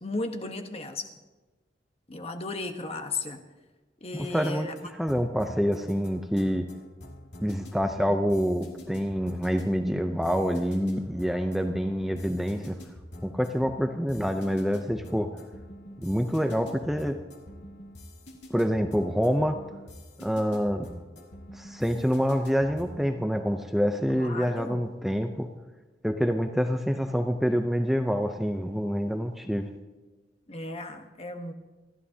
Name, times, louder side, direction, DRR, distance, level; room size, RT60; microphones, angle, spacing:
voice 1, 0.0-1.1 2.1-3.4 4.0-4.7 8.0-8.2 24.2-24.8 30.5-31.5, left 2 dB, 35° left, 6 dB, 1.2 m, -35 dB
sound 1, 4.1-23.0, left 1 dB, 80° left, 2.6 m, -46 dB
voice 2, 4.1-6.7 7.4-12.8 13.2-15.3 16.0-17.2 18.5-19.6 20.2-20.9 21.5-25.5 26.0-29.7, equal, ahead, 5 dB, 0.6 m, -27 dB
28.0 x 11.5 x 2.8 m, 1.2 s
head